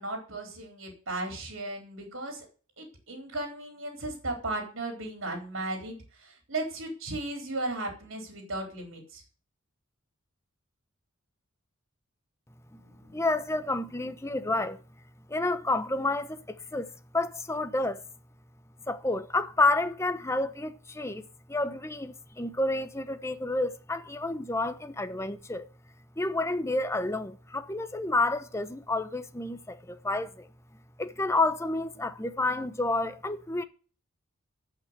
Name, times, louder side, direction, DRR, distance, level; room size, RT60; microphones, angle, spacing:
voice 1, 0.0-2.5 2.8-9.2 12.8-13.2, right 2 dB, 60° right, 3.7 m, -36 dB
voice 2, 13.1-14.8 15.3-18.0 18.9-25.7 26.2-30.5 31.0-33.6, left 2 dB, 15° left, 0.9 m, -30 dB
14.0 x 6.0 x 8.0 m
head